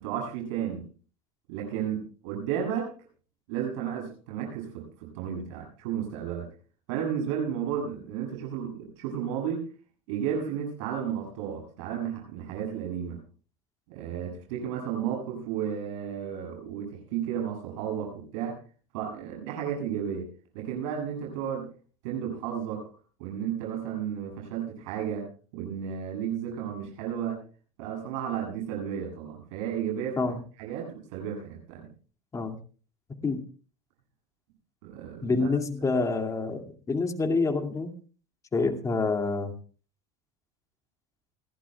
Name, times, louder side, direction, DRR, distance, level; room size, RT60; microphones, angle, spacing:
voice 1, 0.0-0.9 1.5-2.9 3.5-6.4 6.9-9.7 10.1-13.2 13.9-18.6 18.9-20.3 20.5-21.7 22.0-22.9 23.2-25.3 25.5-27.4 27.8-30.3 30.6-31.9 34.8-35.5, right 8 dB, 80° right, 0 dB, 8.0 m, -33 dB
voice 2, 35.2-37.9 38.5-39.5, left 3 dB, 20° left, 4 dB, 2.4 m, -27 dB
29.5 x 11.5 x 2.3 m, 0.39 s
supercardioid pair, 120°, 15 cm